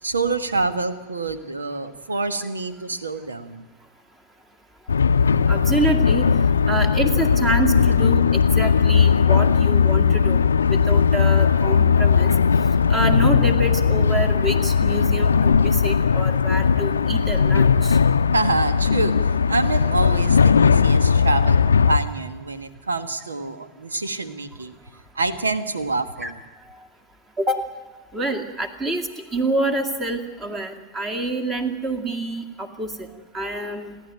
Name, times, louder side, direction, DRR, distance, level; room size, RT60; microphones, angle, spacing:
voice 1, 0.0-3.6 18.3-24.7 25.1-26.3, right 3 dB, 75° right, 11 dB, 1.4 m, -26 dB
sound 1, 4.9-22.0, left 6 dB, 70° left, 0.6 m, -18 dB
voice 2, 5.5-6.3 6.7-10.4 10.7-12.3 12.9-18.0 26.2-26.3 26.7-26.8 27.4-27.6 28.1-33.1 33.3-34.0, right 2 dB, 20° right, 6 dB, 2.2 m, -27 dB
30.0 x 11.0 x 9.1 m, 1.2 s
figure-of-eight pair, 90°, 0 cm